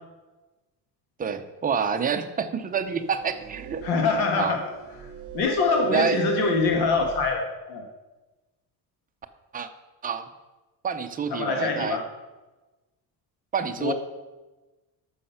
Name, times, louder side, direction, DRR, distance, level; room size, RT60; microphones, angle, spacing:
voice 1, 1.2-3.8 4.4-4.5 5.9-6.2 9.5-9.7 10.0-10.3 10.8-12.0 13.5-13.9, right 6 dB, 25° right, 7 dB, 0.6 m, -27 dB
sound 1, 2.7-7.4, right 13 dB, 40° right, 0.9 m, -36 dB
voice 2, 3.8-4.6 5.3-7.9 11.3-12.0 13.8-13.9, left 4 dB, 80° left, 2 dB, 1.6 m, -24 dB
13.5 x 6.4 x 5.7 m, 1.1 s
cardioid pair, 180°, 38 cm